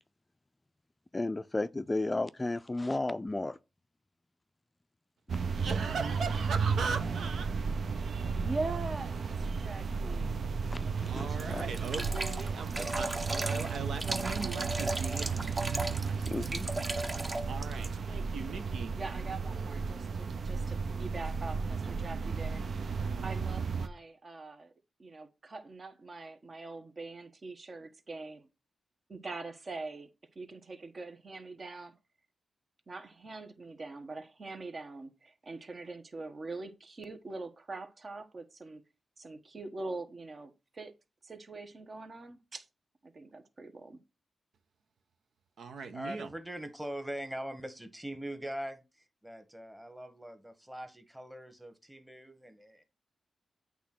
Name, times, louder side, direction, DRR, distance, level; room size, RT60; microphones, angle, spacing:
voice 1, 1.1-3.6 10.7-11.7 16.3-16.7, left 2 dB, 20° left, 0.4 m, -33 dB
sound 1, 5.3-23.9, right 5 dB, 65° right, 0.7 m, -34 dB
voice 2, 5.5-7.5 11.0-15.4 16.0-16.6 17.0-19.0 45.6-46.3, right 5 dB, 80° right, 1.1 m, -39 dB
voice 3, 8.3-10.5 18.9-22.6 23.2-24.7 25.0-28.5 29.1-30.1 30.3-31.9 32.9-38.8 39.2-40.9 41.2-42.7 43.0-44.0, right 3 dB, 45° right, 1.3 m, -43 dB
sound 2, 11.4-17.9, right 2 dB, 30° right, 1.0 m, -36 dB
voice 4, 45.9-52.8, right 1 dB, 5° right, 1.4 m, -42 dB
8.3 x 3.7 x 6.0 m
cardioid pair, 75°, 0 cm